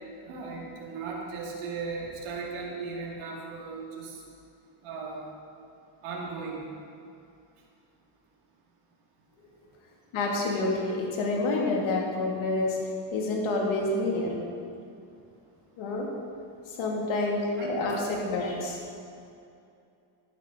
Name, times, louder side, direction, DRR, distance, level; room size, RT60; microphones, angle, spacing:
voice 1, 0.3-4.2 4.8-5.3 6.0-6.7 17.6-17.9, right 4 dB, 85° right, -3 dB, 2.5 m, -37 dB
voice 2, 10.1-12.8 13.1-14.3 15.8-16.1 16.7-18.8, left 2 dB, 70° left, -1 dB, 2.7 m, -28 dB
12.0 x 12.0 x 4.0 m, 2.5 s
cardioid pair, 100°, 49 cm